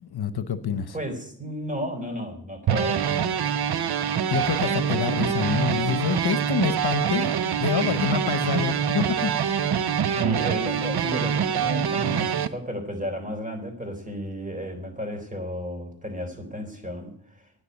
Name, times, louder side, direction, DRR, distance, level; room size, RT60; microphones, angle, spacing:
voice 1, 0.0-0.9 4.3-7.3 7.6-9.3, left 7 dB, 65° left, 12 dB, 1.0 m, -27 dB
voice 2, 0.9-3.1 10.1-17.5, equal, 20° right, 5 dB, 4.0 m, -33 dB
sound 1, 2.7-12.5, right 8 dB, 65° right, 0.9 m, -25 dB
10.5 x 10.0 x 9.6 m, 0.66 s
cardioid pair, 75°, 40 cm